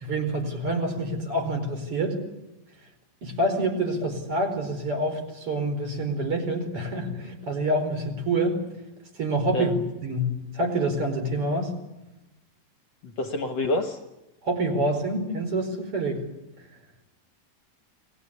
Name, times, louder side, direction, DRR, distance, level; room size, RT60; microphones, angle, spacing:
voice 1, 0.0-2.2 3.2-8.6 9.1-9.7 10.0-11.7 14.4-16.2, right 1 dB, 40° right, 5 dB, 5.6 m, -27 dB
voice 2, 13.0-14.0, left 2 dB, 55° left, 7 dB, 2.5 m, -27 dB
29.5 x 21.0 x 8.5 m, 0.98 s
omnidirectional pair, 4.0 m